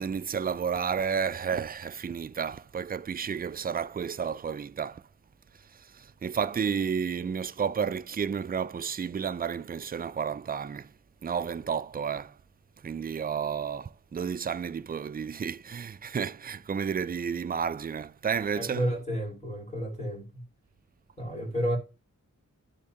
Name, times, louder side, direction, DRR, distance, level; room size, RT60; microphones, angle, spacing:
voice 1, 0.0-5.1 5.5-10.9 11.2-12.4 12.8-18.9, right 7 dB, 30° right, 0.4 m, -31 dB
voice 2, 18.5-20.4 21.2-21.8, equal, 20° left, 2.5 m, -31 dB
10.5 x 3.5 x 5.6 m
wide cardioid pair, 90°, 31 cm